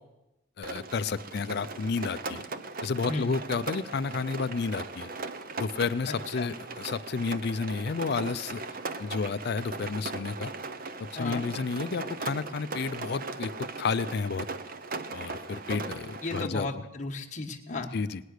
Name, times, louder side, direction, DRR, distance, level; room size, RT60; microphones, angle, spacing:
voice 1, 0.6-2.4 2.8-5.1 5.6-8.6 9.0-10.5 11.1-13.5 13.8-14.5 15.1-16.7 17.9-18.2, left 4 dB, 55° left, 14 dB, 0.4 m, -31 dB
Rain, 0.6-16.4, right 3 dB, 45° right, 0.8 m, -38 dB
voice 2, 6.1-6.5 11.2-11.4 16.2-17.9, left 3 dB, 40° left, 2 dB, 1.3 m, -34 dB
18.5 x 9.5 x 6.5 m, 0.93 s
head